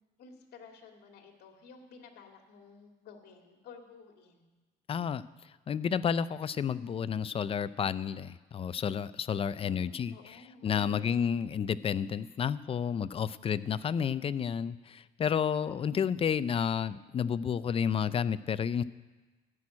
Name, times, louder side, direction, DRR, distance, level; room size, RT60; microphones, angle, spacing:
voice 1, 0.2-4.4 9.6-11.3, left 5 dB, 70° left, 3 dB, 2.2 m, -53 dB
voice 2, 4.9-5.2 5.7-10.1 10.6-18.8, left 7 dB, 35° left, 16 dB, 0.5 m, -31 dB
14.0 x 6.2 x 9.6 m, 1.2 s
cardioid pair, 110°, 17 cm